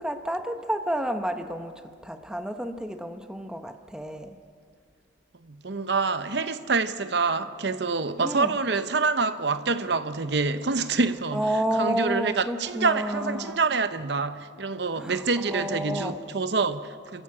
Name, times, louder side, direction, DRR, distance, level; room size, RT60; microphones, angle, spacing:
voice 1, 0.0-4.4 8.2-8.6 11.3-13.6 15.0-16.2, equal, 5° right, 0.9 m, -30 dB
voice 2, 5.4-17.2, right 4 dB, 60° right, 0.8 m, -26 dB
30.0 x 14.5 x 8.5 m
head